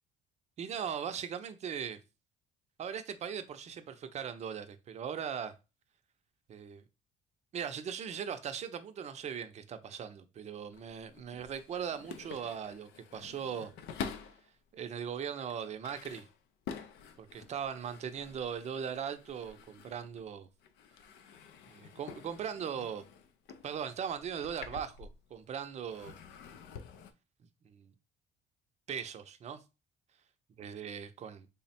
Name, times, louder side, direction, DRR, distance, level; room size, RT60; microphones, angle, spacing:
voice 1, 0.6-2.0 2.8-5.5 6.5-6.8 7.5-13.7 14.7-16.3 17.2-20.5 21.7-23.0 23.6-26.2 27.6-27.9 28.9-29.6 30.6-31.5, right 8 dB, 40° right, 0.5 m, -39 dB
sound 1, 10.6-14.5 15.1-20.3 20.6-25.5 25.8-27.1, left 6 dB, 90° left, 0.5 m, -48 dB
3.4 x 2.1 x 4.1 m
cardioid pair, 110°, 17 cm